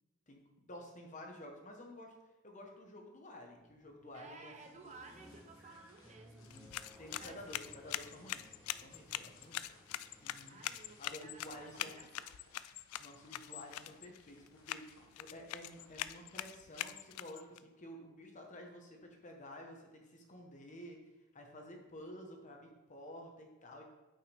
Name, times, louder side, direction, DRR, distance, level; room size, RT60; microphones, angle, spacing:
voice 1, 0.7-2.1 2.4-4.9 6.4-6.7 7.0-9.6 10.2-10.6 11.0-12.1 13.0-14.9 15.2-21.0 21.3-23.8, left 1 dB, 35° left, 2 dB, 1.1 m, -51 dB
sound 1, 3.5-12.1, equal, 5° right, 0.9 m, -61 dB
voice 2, 4.1-6.5 7.2-7.6 8.9-9.4 10.5-12.4, right 3 dB, 30° right, 5 dB, 0.6 m, -56 dB
sound 2, 4.6-16.5, left 3 dB, 65° left, 1.4 m, -68 dB
sound 3, 6.4-17.6, left 13 dB, 85° left, 0.3 m, -44 dB
8.6 x 5.7 x 3.4 m, 1.1 s
head